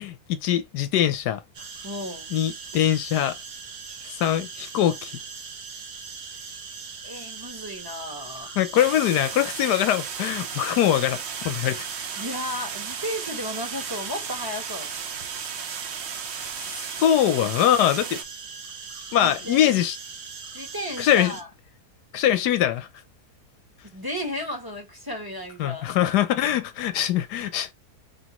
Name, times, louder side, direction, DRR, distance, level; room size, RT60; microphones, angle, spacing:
voice 1, 0.0-1.4 2.3-3.4 4.0-5.1 8.6-11.9 16.6-18.2 19.1-20.0 21.0-21.4 22.1-22.9 25.6-27.7, left 11 dB, 90° left, 1.3 m, -23 dB
sound 1, 1.5-21.4, right 5 dB, 70° right, 1.5 m, -40 dB
voice 2, 1.8-2.3 7.0-8.5 12.2-14.9 19.1-19.8 20.5-21.5 23.9-25.9, left 1 dB, 15° right, 1.3 m, -34 dB
sound 2, 8.8-18.2, right 7 dB, 55° right, 0.8 m, -35 dB
5.0 x 3.1 x 3.0 m
omnidirectional pair, 1.7 m